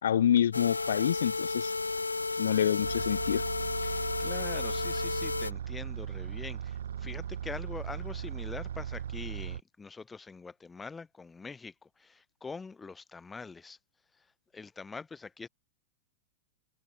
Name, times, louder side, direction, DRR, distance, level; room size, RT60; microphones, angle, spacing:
voice 1, 0.0-1.7 2.4-3.4, left 9 dB, 65° left, 1.7 m, -27 dB
sound 1, 0.5-5.5, left 3 dB, 80° left, 1.1 m, -33 dB
sound 2, 2.8-9.6, right 9 dB, 65° right, 1.6 m, -38 dB
voice 2, 3.8-13.8 14.2-14.3 14.5-15.5, left 4 dB, 15° left, 7.1 m, -44 dB
figure-of-eight pair, 90°, 0 cm